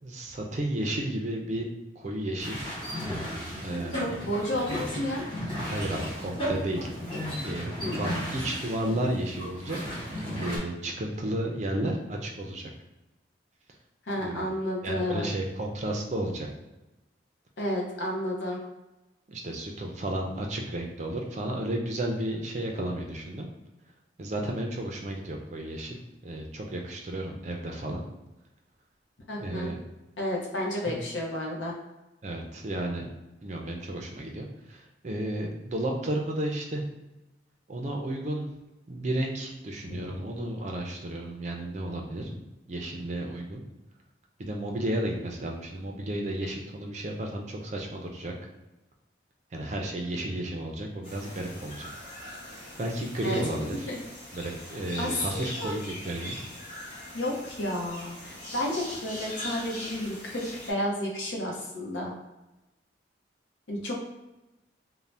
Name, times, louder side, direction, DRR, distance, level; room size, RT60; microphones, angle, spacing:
voice 1, 0.0-1.7 2.0-2.7 3.6-4.0 5.7-6.9 7.4-9.8 10.3-12.7 14.2-14.5 14.8-16.5 19.3-23.5 24.2-26.0 26.2-28.0 29.4-29.8 30.8-31.0 32.2-33.1 33.4-36.8 37.7-38.5 38.9-42.3 42.7-43.6 44.4-48.3 49.5-51.9 52.8-53.9 54.3-56.4, right 1 dB, 40° right, 1 dB, 0.4 m, -32 dB
sound 1, 2.4-10.6, equal, 25° left, 1.0 m, -34 dB
voice 2, 3.9-5.2 7.8-8.0 14.1-15.3 17.6-18.6 29.3-29.7 30.2-31.7 39.8-40.1 42.3-42.4 53.2-53.4 53.9-54.0 55.0-55.8 57.1-62.1 63.7-64.0, left 1 dB, 80° left, -2 dB, 0.7 m, -31 dB
sound 2, 51.0-60.7, left 1 dB, 45° left, 0.8 m, -42 dB
2.6 x 2.1 x 3.2 m, 1.0 s
head